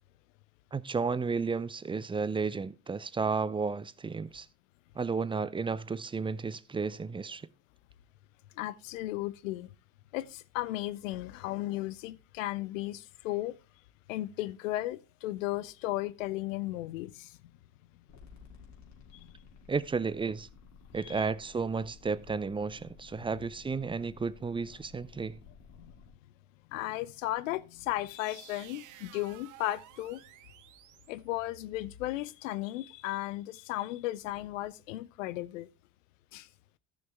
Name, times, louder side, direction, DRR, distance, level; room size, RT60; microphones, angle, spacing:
voice 1, 0.7-4.5 5.0-7.5 19.7-20.5 20.9-25.4, right 4 dB, 15° right, 0.4 m, -33 dB
voice 2, 8.6-9.7 10.1-13.6 14.1-17.4 19.1-19.3 21.0-21.3 25.2-25.3 25.8-25.9 26.7-30.2 31.1-35.7 36.3-36.5, left 16 dB, 75° left, 0.6 m, -35 dB
sound 1, 18.1-26.1, left 5 dB, 45° left, 2.8 m, -55 dB
sound 2, 28.1-31.9, right 13 dB, 50° right, 0.8 m, -54 dB
14.0 x 6.0 x 3.3 m
hypercardioid pair, 60°, 39 cm